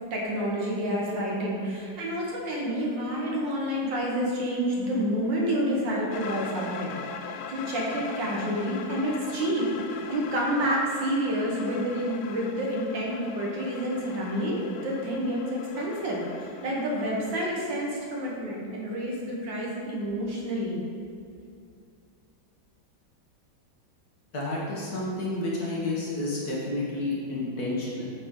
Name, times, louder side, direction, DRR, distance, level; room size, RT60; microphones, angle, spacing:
voice 1, 0.1-7.0 7.5-20.8, equal, 65° right, -3 dB, 1.9 m, -29 dB
sound 1, 6.1-17.5, left 6 dB, 75° left, 1.1 m, -41 dB
voice 2, 24.3-28.1, left 2 dB, 50° left, -5 dB, 1.7 m, -30 dB
8.4 x 5.9 x 3.8 m, 2.4 s
omnidirectional pair, 2.3 m